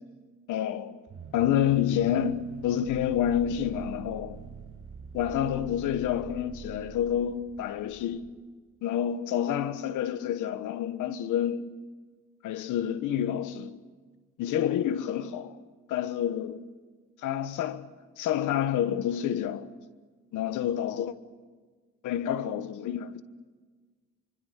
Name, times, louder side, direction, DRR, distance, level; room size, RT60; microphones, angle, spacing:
voice 1, 0.5-1.0 1.3-4.5 5.1-8.3 8.8-11.7 12.4-13.8 14.4-15.6 15.9-16.7 17.2-17.9 18.2-19.7 20.3-21.1 22.0-23.2, left 10 dB, 90° left, 1.2 m, -28 dB
sound 1, 1.1-8.3, right 6 dB, 55° right, 4.1 m, -45 dB
25.0 x 25.0 x 6.6 m
cardioid pair, 90°, 30 cm